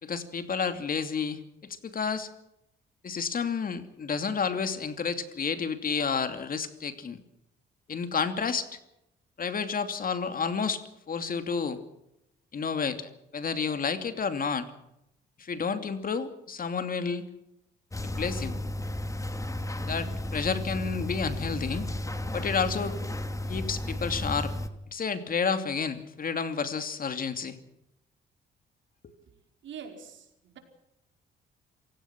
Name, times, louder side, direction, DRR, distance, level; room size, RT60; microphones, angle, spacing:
voice 1, 0.0-2.3 3.0-7.2 7.9-8.7 9.4-10.8 11.1-11.8 12.5-14.7 15.4-17.2 18.0-18.6 19.8-21.9 22.3-23.0 23.5-24.5 24.9-27.6 29.0-29.1, left 5 dB, 45° left, 9 dB, 2.8 m, -30 dB
sound 1, 17.9-24.7, left 1 dB, 15° left, 2.5 m, -33 dB
voice 2, 29.6-30.6, right 7 dB, 70° right, 4 dB, 5.1 m, -44 dB
27.0 x 17.5 x 6.1 m, 0.83 s
cardioid pair, 90°, 20 cm